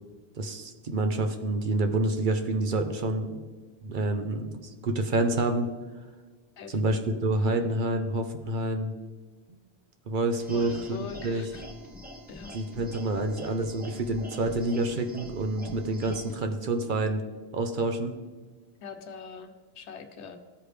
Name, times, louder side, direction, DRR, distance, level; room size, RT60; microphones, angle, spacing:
voice 1, 0.4-3.4 3.8-5.7 6.7-8.9 9.5-9.6 10.1-11.0 11.2-11.5 12.5-17.2 17.5-18.2, right 2 dB, 55° right, 6 dB, 0.8 m, -28 dB
sound 1, 10.4-16.3, equal, 10° right, 1.0 m, -45 dB
voice 2, 10.5-11.6 12.3-12.6 18.8-20.4, left 6 dB, 85° left, 7 dB, 1.1 m, -42 dB
14.0 x 4.9 x 3.2 m, 1.4 s
omnidirectional pair, 1.1 m